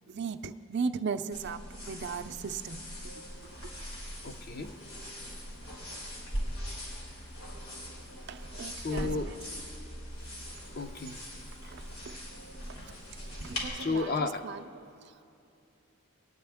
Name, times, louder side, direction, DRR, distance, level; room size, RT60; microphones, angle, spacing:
voice 1, 0.1-2.8 3.2-3.7 5.2-5.4 5.8-6.1 8.3-9.4 11.6-12.2 12.7-12.8 13.2-15.2, right 5 dB, 55° right, 9 dB, 0.5 m, -38 dB
sound 1, 1.3-13.7, equal, 85° left, 3.2 m, -41 dB
voice 2, 4.2-4.7 8.8-9.3 10.8-11.2 12.8-12.9 13.8-14.4, left 3 dB, 45° left, 8 dB, 0.6 m, -32 dB
22.5 x 9.5 x 3.5 m, 2.6 s
head